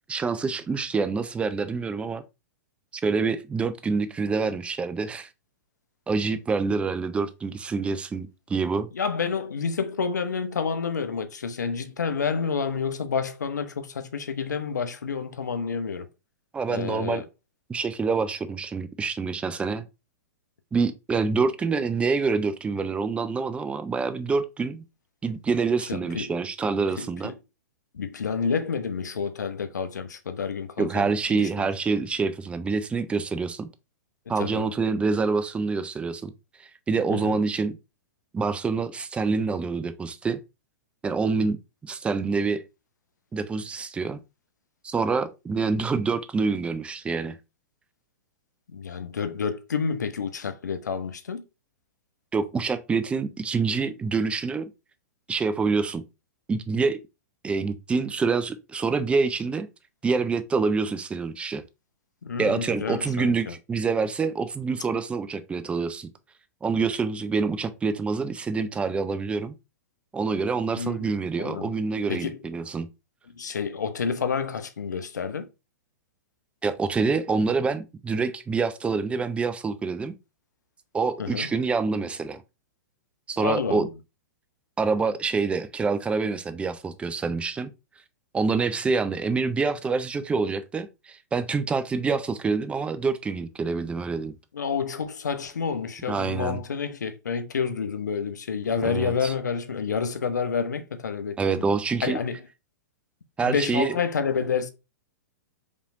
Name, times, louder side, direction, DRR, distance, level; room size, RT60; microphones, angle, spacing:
voice 1, 0.1-2.2 2.9-5.3 6.1-8.9 16.5-17.2 17.7-19.8 20.7-24.8 25.2-27.3 30.8-33.7 34.3-36.3 36.6-37.8 38.3-40.4 41.0-41.6 41.8-42.6 43.3-44.2 44.8-47.4 52.3-54.7 55.3-56.0 56.5-57.0 57.4-59.7 60.0-61.6 62.4-66.1 66.6-69.5 70.1-72.9 76.6-80.1 80.9-82.4 83.3-83.9 84.8-87.7 88.3-94.3 96.1-96.6 98.8-99.3 101.4-102.2 103.4-104.0, right 4 dB, 10° right, 0.5 m, -26 dB
voice 2, 8.9-16.1 16.7-17.3 25.9-26.3 27.0-27.3 27.9-31.1 31.4-31.7 34.4-34.7 37.1-37.4 48.7-51.4 62.2-63.5 70.8-71.1 71.4-71.8 72.1-72.4 73.3-75.5 81.2-81.5 83.4-83.9 94.5-101.6 102.0-102.4 103.4-104.7, left 6 dB, 85° left, 0.7 m, -29 dB
5.1 x 3.3 x 2.6 m
hypercardioid pair, 120°, 9 cm